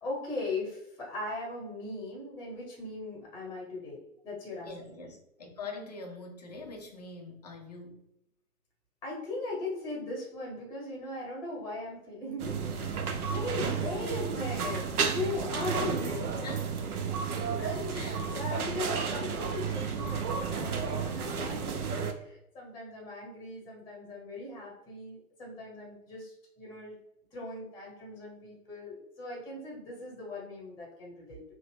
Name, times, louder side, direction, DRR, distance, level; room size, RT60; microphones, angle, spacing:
voice 1, 0.0-5.1 9.0-16.5 17.6-27.0 27.3-31.4, left 2 dB, 10° left, -3 dB, 1.0 m, -39 dB
voice 2, 4.6-8.1 13.6-13.7 15.8-16.0 16.4-16.7 17.9-18.8, left 3 dB, 30° left, 2 dB, 0.4 m, -44 dB
sound 1, 12.4-22.1, right 5 dB, 75° right, 0.6 m, -32 dB
2.7 x 2.0 x 3.4 m, 0.83 s
figure-of-eight pair, 125°, 45 cm